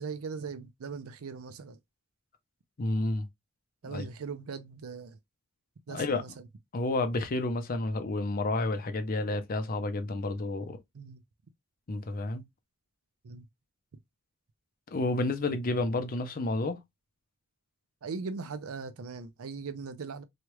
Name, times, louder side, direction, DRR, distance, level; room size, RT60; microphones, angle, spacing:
voice 1, 0.0-1.8 3.8-5.2 5.9-6.4 10.9-11.2 13.2-13.5 18.0-20.2, right 5 dB, 85° right, 0.5 m, -39 dB
voice 2, 2.8-3.3 3.9-4.0 5.9-6.2 6.7-10.8 11.9-12.4 14.9-16.8, left 2 dB, 40° left, 0.5 m, -30 dB
3.0 x 2.3 x 2.9 m
head